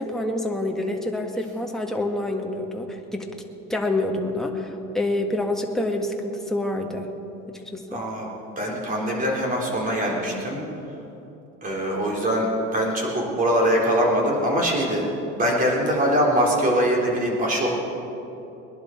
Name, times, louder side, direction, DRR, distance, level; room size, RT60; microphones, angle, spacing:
voice 1, 0.0-3.3 3.7-7.1 7.5-8.0, left 1 dB, ahead, 1 dB, 1.5 m, -27 dB
voice 2, 7.9-8.3 8.6-10.7 11.6-15.1 15.4-17.7, equal, 25° right, -2 dB, 3.7 m, -23 dB
20.5 x 11.0 x 4.6 m, 2.9 s
cardioid pair, 125°, 31 cm